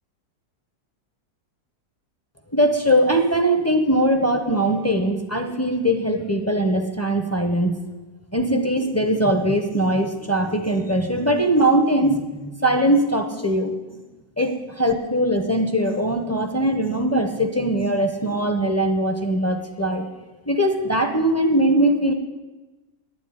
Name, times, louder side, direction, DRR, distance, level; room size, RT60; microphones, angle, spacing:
voice 1, 2.5-7.8 8.3-13.7 14.4-20.1 20.5-22.1, right 1 dB, 15° left, 5 dB, 0.5 m, -21 dB
9.9 x 8.3 x 9.8 m, 1.2 s
omnidirectional pair, 1.7 m